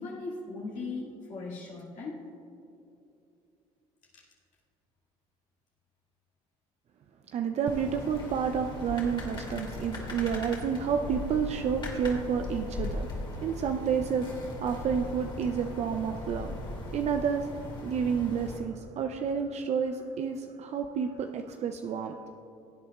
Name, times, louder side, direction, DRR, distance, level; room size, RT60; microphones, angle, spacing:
voice 1, 0.0-2.2 4.1-4.2, left 3 dB, 60° left, -5 dB, 2.0 m, -38 dB
voice 2, 7.3-13.1 13.4-14.3 14.6-16.6 16.9-17.5 17.8-22.1, right 7 dB, 50° right, 6 dB, 0.5 m, -30 dB
sound 1, 7.7-18.6, left 2 dB, 35° left, 2.5 m, -39 dB
17.5 x 8.2 x 2.4 m, 2.8 s
supercardioid pair, 85°, 14 cm